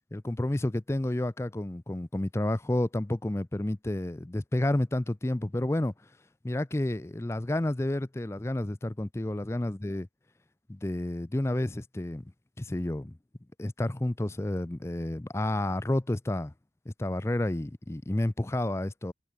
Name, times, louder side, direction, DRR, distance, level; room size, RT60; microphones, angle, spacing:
voice 1, 0.1-5.9 6.4-10.1 10.7-12.2 12.6-13.2 13.6-16.5 16.9-19.1, left 1 dB, 15° left, 0.4 m, -30 dB
head